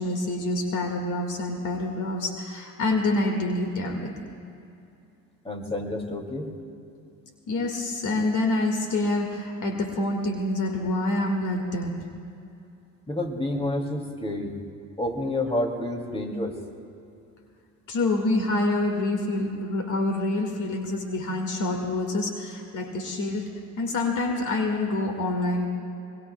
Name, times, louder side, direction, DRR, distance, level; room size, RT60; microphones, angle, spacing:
voice 1, 0.0-4.3 7.5-12.0 17.9-23.5 23.8-25.7, left 2 dB, 55° left, 3 dB, 2.1 m, -27 dB
voice 2, 5.4-6.5 13.1-14.6 15.0-16.6, left 1 dB, 15° left, 3 dB, 2.6 m, -29 dB
23.0 x 23.0 x 2.3 m, 2.6 s
hypercardioid pair, 65°, 36 cm